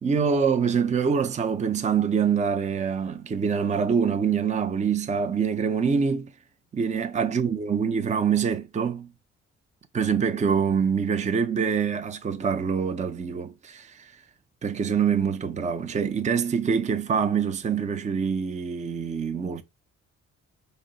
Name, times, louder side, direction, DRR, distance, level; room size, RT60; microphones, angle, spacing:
voice 1, 0.0-6.3 6.7-9.1 9.9-14.1 14.6-19.6, right 6 dB, 25° right, 0.5 m, -25 dB
4.3 x 2.1 x 3.9 m
cardioid pair, 90°, 30 cm